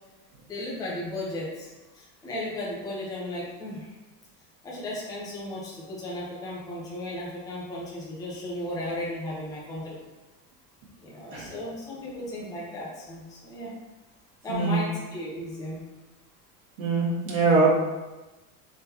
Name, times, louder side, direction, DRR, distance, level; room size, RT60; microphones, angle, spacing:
voice 1, 0.5-1.7 1.9-3.9 4.6-10.0 11.0-13.7 14.4-15.8, left 1 dB, 10° left, -6 dB, 0.6 m, -35 dB
voice 2, 14.5-14.8 16.8-17.7, right 4 dB, 85° right, -6 dB, 1.5 m, -23 dB
3.7 x 3.5 x 2.8 m, 1.1 s
cardioid pair, 155°, 38 cm